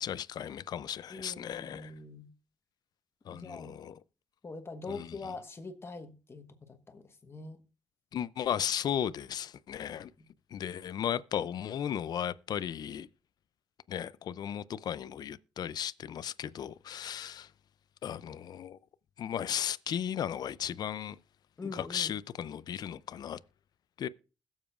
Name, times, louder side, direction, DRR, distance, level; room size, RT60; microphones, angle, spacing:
voice 1, 0.0-1.9 3.3-4.0 4.9-5.2 8.1-10.1 10.5-13.1 13.9-17.5 18.0-18.8 19.2-21.2 21.7-23.4 24.0-24.1, left 9 dB, 65° left, 0.4 m, -35 dB
voice 2, 1.1-2.3 3.3-3.8 4.4-7.6 10.2-10.3 21.6-22.1, left 3 dB, 35° left, 1.2 m, -43 dB
21.0 x 7.2 x 2.4 m
cardioid pair, 105°, 8 cm